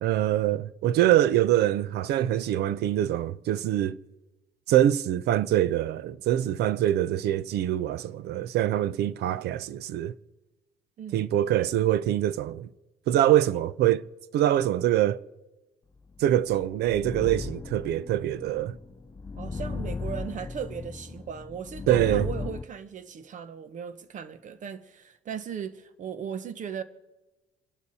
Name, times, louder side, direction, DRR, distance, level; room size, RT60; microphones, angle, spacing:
voice 1, 0.0-4.0 4.7-10.1 11.1-12.7 13.1-14.0 14.3-15.2 16.2-18.8 21.9-22.3, right 12 dB, 75° right, 0.7 m, -24 dB
voice 2, 11.0-11.3 19.4-26.8, right 7 dB, 50° right, 1.2 m, -37 dB
sound 1, 16.2-22.6, left 4 dB, 20° left, 0.6 m, -36 dB
28.5 x 11.5 x 4.2 m
cardioid pair, 110°, 17 cm